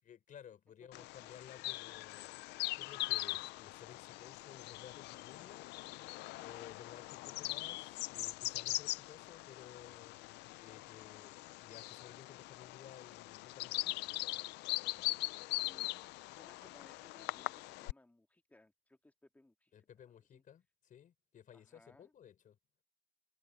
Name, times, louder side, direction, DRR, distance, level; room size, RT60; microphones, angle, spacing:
voice 1, 0.0-5.7 6.0-14.1 14.9-15.2 19.7-22.6, left 9 dB, 50° left, 4.8 m, -56 dB
Bird vocalization bird call bird song, 0.9-17.9, left 20 dB, 85° left, 0.5 m, -41 dB
voice 2, 15.6-15.9 16.3-19.7 20.3-20.4 21.5-22.1, left 1 dB, 10° left, 2.0 m, -64 dB
cardioid pair, 110°, 17 cm